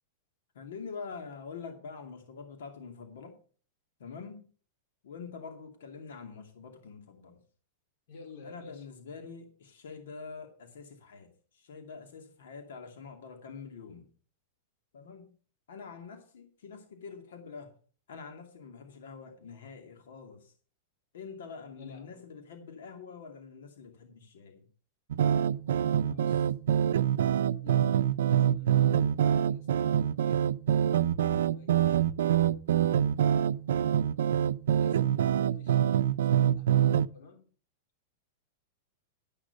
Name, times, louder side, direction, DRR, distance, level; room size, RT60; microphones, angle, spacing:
voice 1, 0.5-3.4 4.0-4.5 5.0-7.4 8.4-14.1 14.9-15.3 15.7-17.7 18.1-20.5 21.1-24.7, left 5 dB, 85° left, 2.4 m, -45 dB
voice 2, 8.1-8.9 21.8-22.2 26.0-26.5 27.6-30.5 31.4-32.2 32.9-33.4 34.8-37.5, left 5 dB, 65° left, 3.7 m, -51 dB
sound 1, 25.1-37.1, right 10 dB, 85° right, 0.5 m, -25 dB
12.0 x 6.4 x 6.7 m
supercardioid pair, 150°, 0 cm